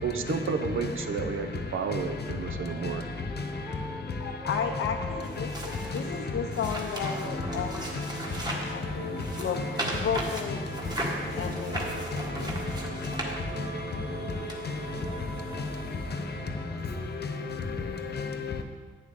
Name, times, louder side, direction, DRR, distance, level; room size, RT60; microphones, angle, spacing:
voice 1, 0.0-3.0, right 5 dB, 70° right, 0.8 m, -31 dB
Wind instrument woodwind instrument, 1.6-8.1, equal, ahead, 0.6 m, -45 dB
voice 2, 4.2-8.1 8.7-9.6 10.0-10.6 11.3-11.9 12.3-12.5, left 6 dB, 85° left, 0.7 m, -33 dB
sound 1, 5.2-8.8 9.2-13.8 14.5-14.6, right 1 dB, 20° right, 1.6 m, -37 dB
voice 3, 7.0-7.4 7.9-8.0 8.5-8.6 9.5-9.6 10.5-10.6 11.0-11.4 12.1-12.2 13.0-13.1 13.6-13.7 14.6-14.7 15.5-15.7 16.1-16.2 17.1-17.3 17.6-18.6, left 4 dB, 50° left, 1.0 m, -33 dB
sound 2, 7.2-17.0, right 2 dB, 50° right, 2.9 m, -40 dB
11.0 x 9.5 x 3.8 m
wide cardioid pair, 130°, 21 cm